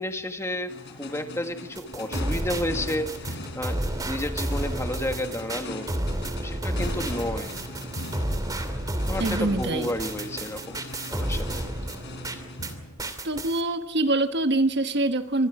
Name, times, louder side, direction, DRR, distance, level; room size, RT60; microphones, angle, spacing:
voice 1, 0.0-5.9 6.4-7.6 9.1-10.8 11.1-11.6, left 1 dB, 15° left, 5 dB, 1.8 m, -31 dB
sound 1, 0.7-13.4, left 2 dB, 55° left, 4.1 m, -40 dB
sound 2, 1.7-12.7 13.0-13.6, right 1 dB, 20° right, 2.6 m, -31 dB
voice 2, 9.2-9.9 13.2-15.5, right 2 dB, 55° right, 8 dB, 1.3 m, -24 dB
25.5 x 25.0 x 4.9 m, 0.76 s
head